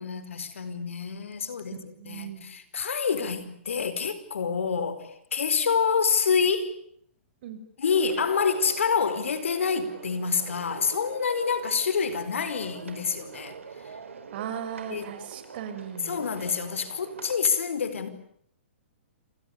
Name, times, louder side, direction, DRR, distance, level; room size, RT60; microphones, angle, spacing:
voice 1, 0.0-6.7 7.8-13.6 14.9-15.1 16.0-18.1, left 6 dB, 85° left, 13 dB, 4.8 m, -27 dB
voice 2, 1.9-2.5 7.4-7.6 14.3-16.3, right 9 dB, 50° right, 9 dB, 6.2 m, -37 dB
sound 1, 7.9-17.4, right 5 dB, 90° right, 5.1 m, -44 dB
28.5 x 27.5 x 6.9 m, 0.67 s
hypercardioid pair, 145°, 7 cm